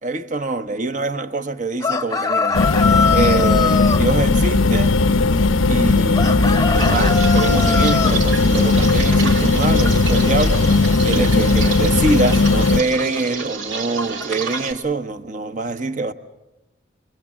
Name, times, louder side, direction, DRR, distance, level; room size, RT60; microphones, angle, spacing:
voice 1, 0.0-2.8 3.1-5.0 5.7-16.1, right 2 dB, 40° right, 1.0 m, -25 dB
sound 1, 1.8-4.0 6.1-8.2, left 5 dB, 15° left, 0.8 m, -22 dB
sound 2, 2.5-12.8, left 3 dB, 80° left, 0.8 m, -17 dB
sound 3, 6.7-14.7, right 5 dB, 75° right, 1.9 m, -29 dB
26.5 x 23.0 x 7.3 m
head